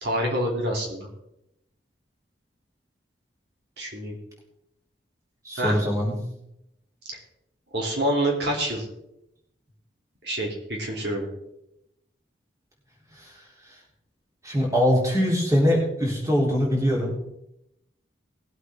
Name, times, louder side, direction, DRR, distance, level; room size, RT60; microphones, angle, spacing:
voice 1, 0.0-1.1 3.8-4.2 5.6-5.8 7.7-8.9 10.2-11.3, right 1 dB, 65° right, -1 dB, 2.8 m, -26 dB
voice 2, 5.4-6.2 13.2-13.4 14.4-17.1, equal, 15° right, -3 dB, 3.4 m, -22 dB
19.5 x 8.2 x 3.5 m, 0.83 s
head